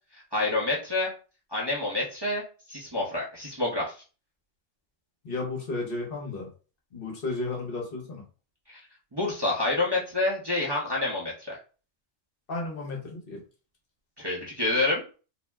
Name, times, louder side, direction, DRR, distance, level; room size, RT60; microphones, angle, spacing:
voice 1, 0.3-1.1 1.5-2.4 2.7-3.9 8.7-8.8 9.1-11.6 14.2-15.0, left 2 dB, 25° right, -6 dB, 0.6 m, -28 dB
voice 2, 5.2-6.5 6.9-8.2 12.5-13.4, left 3 dB, 55° left, 0 dB, 1.0 m, -33 dB
2.5 x 2.0 x 3.3 m, 0.36 s
omnidirectional pair, 1.2 m